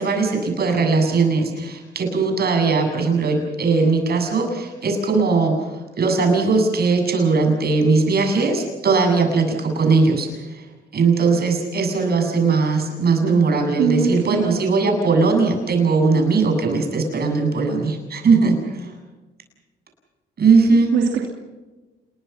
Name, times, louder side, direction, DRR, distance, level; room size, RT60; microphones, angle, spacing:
voice 1, 0.0-5.7 6.0-10.3 10.9-18.9 20.4-20.9, right 4 dB, 50° right, 4 dB, 7.7 m, -19 dB
voice 2, 13.8-14.6 20.9-21.3, right 7 dB, 90° right, 1 dB, 2.9 m, -21 dB
28.5 x 21.5 x 5.9 m, 1.2 s
cardioid pair, 90°, 20 cm